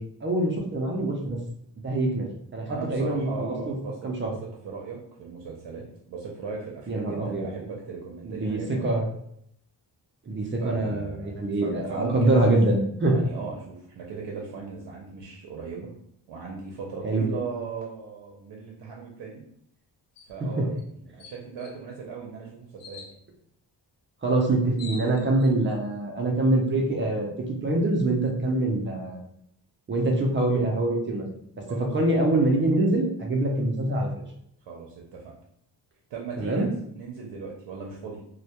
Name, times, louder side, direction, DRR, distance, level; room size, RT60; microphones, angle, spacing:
voice 1, 0.0-1.4 1.8-3.7 4.0-4.3 6.9-7.5 8.3-9.1 10.3-13.2 17.0-17.3 20.6-20.7 24.2-27.3 27.6-29.3 29.9-31.3 31.9-34.2 36.4-36.7, right 2 dB, 30° right, 1 dB, 0.4 m, -24 dB
voice 2, 2.7-8.9 10.6-11.3 11.6-12.4 13.0-15.9 16.3-19.4 20.3-23.0 31.7-31.9 34.6-35.3 36.1-38.2, right 5 dB, 75° right, -2 dB, 0.6 m, -38 dB
sound 1, 20.2-20.4 20.8-20.9 21.2-21.7 22.8-23.1 24.3-24.4 24.6-25.5, left 4 dB, 85° left, 0.6 m, -44 dB
2.1 x 2.1 x 2.8 m, 0.71 s
wide cardioid pair, 145°, 42 cm